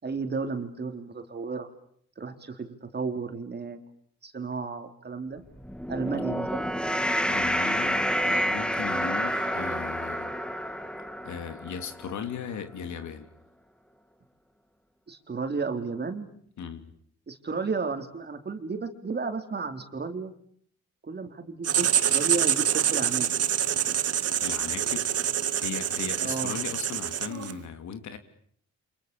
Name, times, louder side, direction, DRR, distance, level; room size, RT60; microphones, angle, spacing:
voice 1, 0.0-1.7 2.2-3.8 4.2-5.4 5.9-6.7 15.1-16.3 17.3-20.3 21.0-23.3 26.2-26.6, right 4 dB, 35° right, 3.8 m, -33 dB
sound 1, 5.5-12.1, equal, 5° left, 1.8 m, -29 dB
voice 2, 7.3-10.3 11.2-13.3 16.6-16.9 24.4-25.1 25.6-28.2, left 7 dB, 70° left, 3.2 m, -37 dB
Writing, 21.6-27.6, right 10 dB, 55° right, 1.1 m, -26 dB
30.0 x 27.0 x 7.1 m
cardioid pair, 90°, 30 cm